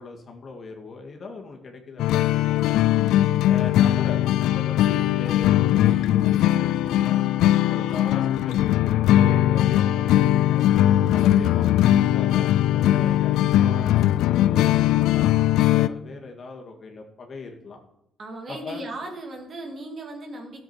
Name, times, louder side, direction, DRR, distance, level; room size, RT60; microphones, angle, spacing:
voice 1, 0.0-2.8 3.5-7.2 7.7-10.6 11.1-17.8 18.5-18.8, left 3 dB, 50° left, 1 dB, 2.3 m, -39 dB
sound 1, 2.0-15.9, left 13 dB, 90° left, 0.3 m, -20 dB
voice 2, 18.2-20.6, right 1 dB, 50° right, 2 dB, 2.8 m, -36 dB
14.5 x 7.7 x 4.5 m, 0.78 s
cardioid pair, 90°, 0 cm